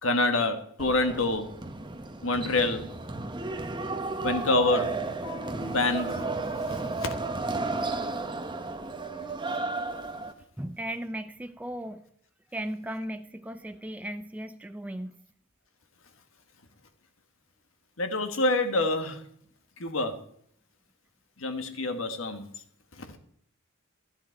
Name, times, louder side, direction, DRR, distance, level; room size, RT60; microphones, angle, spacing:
voice 1, 0.0-1.5 2.2-2.9 4.2-5.0 5.2-6.3 6.7-7.1 7.9-8.1 18.0-19.2 19.8-20.2 21.4-22.5 23.0-23.2, left 2 dB, 70° left, 7 dB, 1.5 m, -27 dB
sound 1, 0.8-10.3, right 3 dB, 25° right, 0.9 m, -33 dB
voice 2, 10.6-12.0 12.5-15.2, right 1 dB, 5° right, 8 dB, 0.4 m, -36 dB
13.5 x 9.3 x 4.6 m, 0.67 s
head